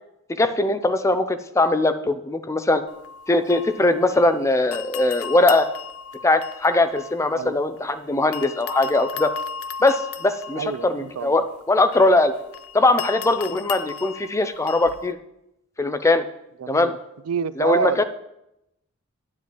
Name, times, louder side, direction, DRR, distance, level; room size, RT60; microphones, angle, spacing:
voice 1, 0.3-2.8 3.3-5.7 6.2-9.3 9.8-12.3 12.7-15.2 15.8-16.2 16.7-16.9 17.6-18.0, left 2 dB, 15° left, 0.4 m, -20 dB
sound 1, 2.9-4.4 4.7-7.9 8.3-15.1, left 6 dB, 85° left, 0.5 m, -36 dB
voice 2, 10.5-11.3 16.6-17.0 17.3-18.0, right 7 dB, 80° right, 0.4 m, -27 dB
10.5 x 9.0 x 3.0 m
head